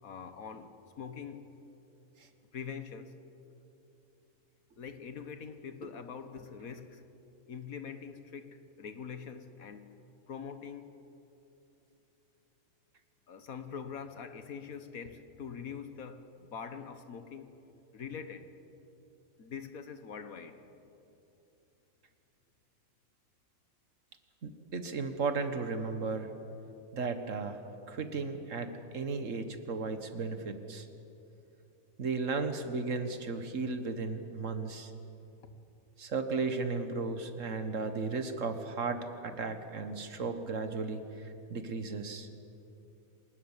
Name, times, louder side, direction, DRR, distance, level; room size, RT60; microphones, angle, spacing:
voice 1, 0.0-1.6 2.5-3.2 4.8-7.0 7.5-9.9 10.3-11.0 13.3-17.5 17.9-18.5 19.4-20.6 35.4-35.5, left 6 dB, 75° left, 9 dB, 1.7 m, -44 dB
voice 2, 24.4-26.3 26.9-27.6 27.9-30.9 32.0-34.9 36.0-41.0 41.5-42.3, right 4 dB, 60° right, 8 dB, 1.7 m, -35 dB
25.0 x 20.0 x 7.4 m, 2.9 s
omnidirectional pair, 1.5 m